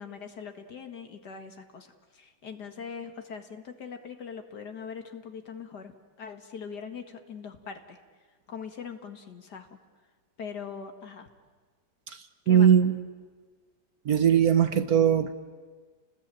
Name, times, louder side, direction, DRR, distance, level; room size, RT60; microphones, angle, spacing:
voice 1, 0.0-5.9 6.2-8.0 8.5-9.8 10.4-11.3 12.5-12.7, left 6 dB, 60° left, 7 dB, 2.3 m, -41 dB
voice 2, 12.5-13.0 14.0-15.3, right 8 dB, 55° right, 10 dB, 1.3 m, -20 dB
29.5 x 20.0 x 9.0 m, 1.5 s
omnidirectional pair, 2.1 m